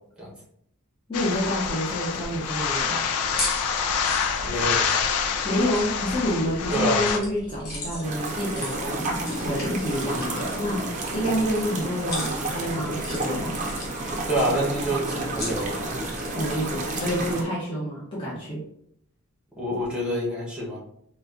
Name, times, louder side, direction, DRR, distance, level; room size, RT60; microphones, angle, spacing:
sound 1, 1.1-7.2, left 6 dB, 85° left, 0.4 m, -26 dB
voice 1, 1.1-3.0 5.4-10.8 11.1-13.5 16.3-18.6, equal, 25° left, -8 dB, 0.7 m, -28 dB
sound 2, 3.2-17.3, left 1 dB, 45° left, 1.1 m, -38 dB
voice 2, 4.4-4.9 6.7-7.1 14.3-15.9 19.6-20.8, right 1 dB, 5° right, -5 dB, 0.9 m, -27 dB
sound 3, 8.0-17.4, right 2 dB, 35° right, 0.6 m, -30 dB
4.1 x 2.3 x 2.4 m, 0.70 s
head